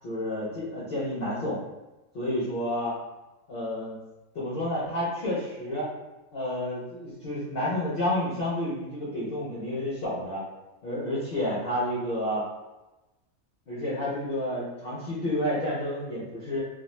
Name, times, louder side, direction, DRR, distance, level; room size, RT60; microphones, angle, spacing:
voice 1, 0.0-1.6 2.1-2.9 3.5-4.0 4.3-5.9 6.3-10.4 10.8-12.4 13.7-16.6, left 1 dB, 50° left, -8 dB, 0.7 m, -30 dB
2.4 x 2.3 x 3.0 m, 1.0 s
omnidirectional pair, 1.5 m